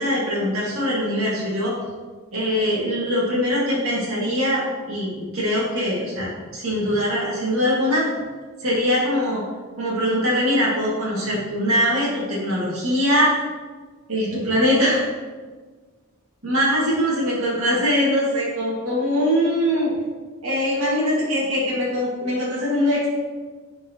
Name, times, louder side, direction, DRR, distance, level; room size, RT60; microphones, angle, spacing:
voice 1, 0.0-1.8 2.3-8.1 8.6-9.4 9.8-13.4 14.1-15.1 16.4-19.9 20.4-23.1, equal, 85° right, -7 dB, 2.0 m, -22 dB
10.5 x 4.5 x 3.0 m, 1.4 s
head